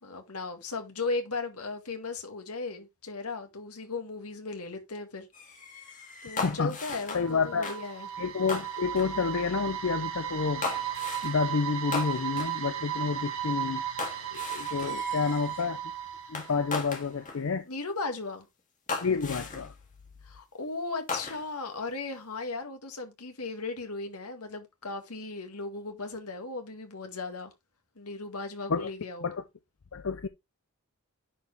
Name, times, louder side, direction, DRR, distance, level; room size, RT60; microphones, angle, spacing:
voice 1, 0.0-5.3 6.2-8.1 17.7-18.5 20.2-27.5 28.0-29.3, left 3 dB, 85° left, 2.0 m, -36 dB
sound 1, 5.3-7.3 7.6-7.9 8.5-9.1 10.6-11.4 11.9-12.6 14.0-15.7 16.3-17.4 18.2-18.3 18.9-19.7 21.1-21.6, left 4 dB, 35° left, 1.9 m, -37 dB
voice 2, 6.4-6.7 7.1-7.7 8.2-10.6 11.2-13.8 14.3-15.8 16.3-17.7 19.0-19.7 28.7-28.9 29.2-29.4 29.9-30.3, left 5 dB, 60° left, 0.6 m, -29 dB
sound 2, 6.9-17.0, right 9 dB, 65° right, 1.6 m, -35 dB
9.9 x 4.7 x 3.3 m
head